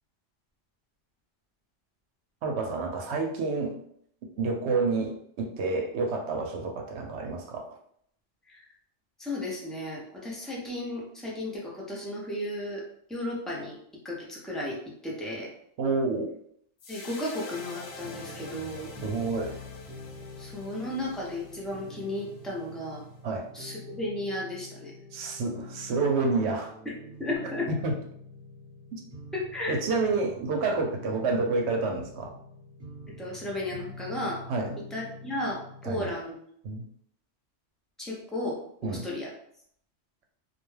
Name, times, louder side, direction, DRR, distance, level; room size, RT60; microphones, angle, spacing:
voice 1, 2.4-3.8 4.4-7.7 15.8-16.3 19.0-19.6 23.2-23.5 25.1-26.7 27.7-27.9 28.9-29.0 29.7-32.4 34.5-34.8 35.8-36.1 36.6-36.8 38.8-39.1, right 3 dB, 70° right, 2 dB, 0.8 m, -29 dB
voice 2, 9.2-12.8 13.1-13.8 14.0-15.5 16.9-18.9 20.4-24.9 27.2-27.7 29.3-29.8 33.2-34.4 34.9-36.4 38.0-39.3, left 1 dB, ahead, -4 dB, 0.3 m, -34 dB
sound 1, 16.8-23.2, left 3 dB, 60° left, 0.7 m, -46 dB
New sad guitar melody, 17.5-36.1, left 2 dB, 25° right, 1.2 m, -46 dB
2.4 x 2.2 x 3.1 m, 0.66 s
omnidirectional pair, 1.2 m